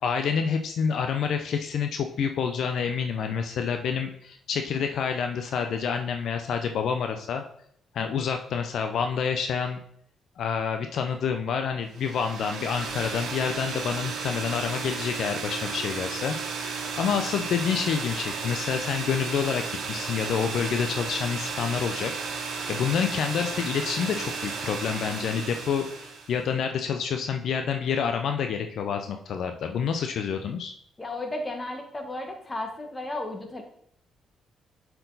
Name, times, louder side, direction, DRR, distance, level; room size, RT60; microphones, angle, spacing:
voice 1, 0.0-7.4 7.9-9.8 10.4-22.1 22.7-30.7, left 6 dB, 70° left, 6 dB, 0.5 m, -28 dB
sound 1, 11.9-26.4, right 4 dB, 70° right, 1.4 m, -34 dB
voice 2, 31.0-33.6, left 2 dB, 20° left, 3 dB, 1.5 m, -34 dB
7.9 x 4.5 x 3.9 m, 0.68 s
cardioid pair, 90°, 0 cm